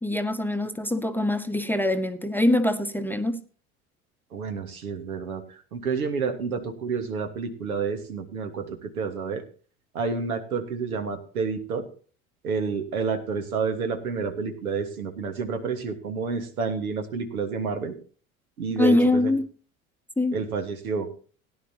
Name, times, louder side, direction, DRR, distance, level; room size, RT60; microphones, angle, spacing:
voice 1, 0.0-3.4 18.8-19.5 20.2-20.4, left 1 dB, 5° left, 0.8 m, -23 dB
voice 2, 4.3-9.4 9.9-11.9 12.4-17.9 18.6-19.3 20.3-21.1, right 5 dB, 80° right, 1.6 m, -29 dB
17.5 x 10.5 x 2.8 m
figure-of-eight pair, 70°, 42 cm